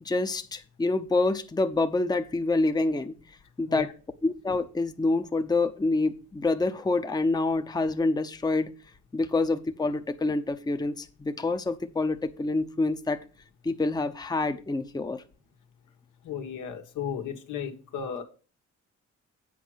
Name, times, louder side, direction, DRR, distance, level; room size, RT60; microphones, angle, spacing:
voice 1, 0.0-3.2 3.6-3.9 4.2-8.7 9.1-13.2 13.6-15.2, left 2 dB, 15° left, 8 dB, 0.7 m, -27 dB
voice 2, 16.2-18.2, left 7 dB, 85° left, 4 dB, 1.6 m, -34 dB
8.5 x 5.0 x 6.2 m, 0.35 s
cardioid pair, 90°, 30 cm